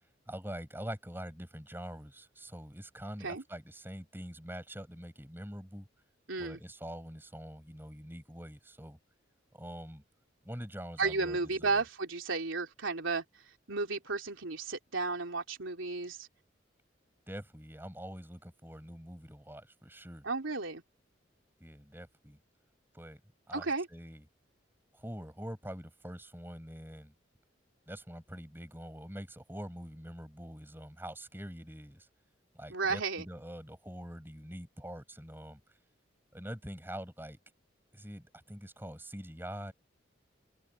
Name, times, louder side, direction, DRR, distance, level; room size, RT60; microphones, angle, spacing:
voice 1, 0.3-5.9 6.4-9.0 9.5-10.0 10.4-11.8 17.3-20.2 21.6-22.4 22.9-23.2 23.5-24.3 24.9-27.1 27.9-32.1 32.5-35.6 36.3-37.4 37.9-39.7, equal, 10° right, 6.4 m, -45 dB
voice 2, 6.3-6.6 11.0-13.2 13.7-16.3 20.2-20.8 23.5-23.9 32.7-33.2, right 3 dB, 90° right, 3.3 m, -33 dB
head